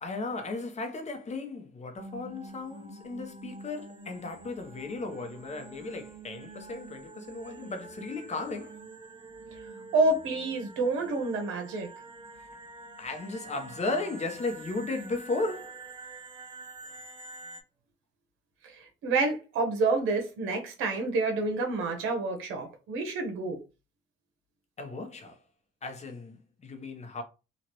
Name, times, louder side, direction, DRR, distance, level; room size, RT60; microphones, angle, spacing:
voice 1, 0.0-8.8 13.0-15.8 24.8-25.4 25.8-27.2, left 3 dB, 35° left, 0.9 m, -35 dB
sound 1, 1.9-17.6, right 3 dB, 25° right, 0.7 m, -47 dB
voice 2, 9.9-11.9 18.6-23.6, right 3 dB, 90° right, 0.9 m, -28 dB
3.0 x 2.4 x 3.0 m
cardioid pair, 90°, 20 cm